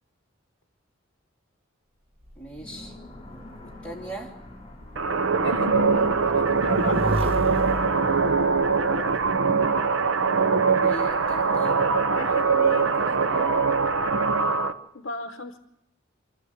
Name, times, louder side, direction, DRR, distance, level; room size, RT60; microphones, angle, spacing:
Motorcycle / Engine, 2.2-9.3, equal, 30° right, 1.3 m, -35 dB
voice 1, 2.4-3.0 3.8-4.3 10.7-11.8, right 1 dB, 5° left, -3 dB, 3.3 m, -38 dB
sound 1, 2.6-13.1, left 1 dB, 25° left, 5.8 m, -50 dB
sound 2, 5.0-14.7, right 4 dB, 70° right, 0.9 m, -22 dB
voice 2, 5.4-7.0 12.1-13.6 14.9-15.6, left 3 dB, 65° left, 7 dB, 0.9 m, -36 dB
26.0 x 12.5 x 8.1 m, 0.87 s
head